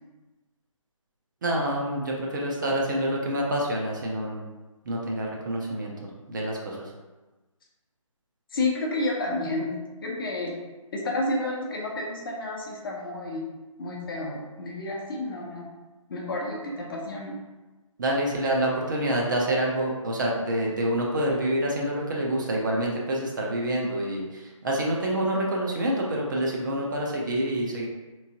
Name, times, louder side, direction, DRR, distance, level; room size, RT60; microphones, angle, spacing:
voice 1, 1.4-4.4 4.9-5.9 6.3-6.8 18.0-27.9, right 1 dB, 35° right, -2 dB, 0.5 m, -27 dB
voice 2, 8.5-9.7 10.0-10.5 10.9-13.5 13.8-15.7 16.1-17.4, left 2 dB, 40° left, -2 dB, 0.7 m, -30 dB
3.3 x 3.0 x 2.7 m, 1.2 s
figure-of-eight pair, 150°, 18 cm